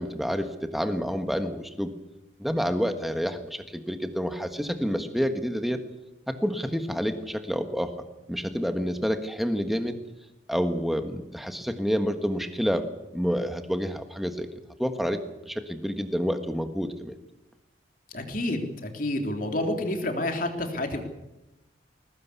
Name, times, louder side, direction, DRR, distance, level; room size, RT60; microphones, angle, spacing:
voice 1, 0.0-1.9 2.4-5.8 6.3-7.9 8.3-10.0 10.5-12.8 13.1-14.5 14.8-15.2 15.5-17.2, equal, ahead, 7 dB, 1.5 m, -28 dB
voice 2, 18.1-21.0, left 1 dB, 45° left, 4 dB, 3.4 m, -29 dB
21.5 x 18.5 x 8.4 m, 0.96 s
head